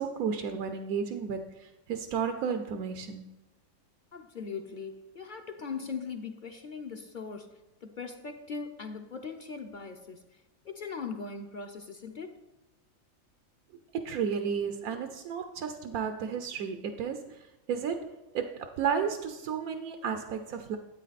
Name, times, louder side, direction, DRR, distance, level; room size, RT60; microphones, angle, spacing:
voice 1, 0.0-3.3 13.9-20.8, right 6 dB, 85° right, 7 dB, 1.2 m, -33 dB
voice 2, 4.1-7.5 7.8-10.2 10.6-12.4, left 5 dB, 45° left, 6 dB, 0.7 m, -40 dB
12.5 x 8.4 x 4.1 m, 1.0 s
omnidirectional pair, 1.5 m